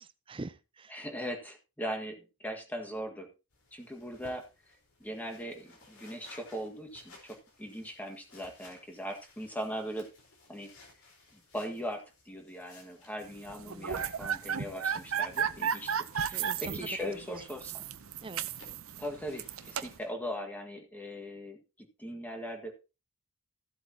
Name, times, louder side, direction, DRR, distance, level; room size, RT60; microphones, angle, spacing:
voice 1, 0.0-1.0 13.7-14.1 16.3-16.9 18.2-18.5, right 2 dB, 25° right, 0.5 m, -45 dB
voice 2, 0.9-3.3 3.7-4.5 5.0-10.1 10.5-10.7 11.3-17.8 19.0-22.7, equal, 10° left, 1.7 m, -40 dB
sound 1, 3.5-20.1, left 3 dB, 65° left, 4.4 m, -59 dB
sound 2, 13.5-20.0, right 7 dB, 65° right, 0.7 m, -34 dB
15.5 x 7.8 x 2.9 m
head